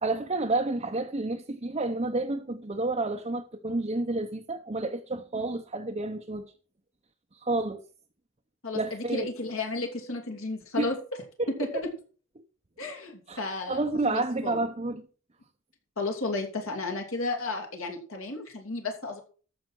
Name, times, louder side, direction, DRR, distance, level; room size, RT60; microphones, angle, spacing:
voice 1, 0.0-6.5 7.3-7.8 8.7-9.3 10.8-10.9 11.5-11.8 13.3-13.4 13.7-15.1, right 2 dB, 25° right, 0.7 m, -30 dB
voice 2, 8.6-11.0 11.6-11.8 12.8-14.6 16.0-19.2, left 3 dB, 65° left, 2.7 m, -33 dB
14.0 x 5.7 x 4.6 m
head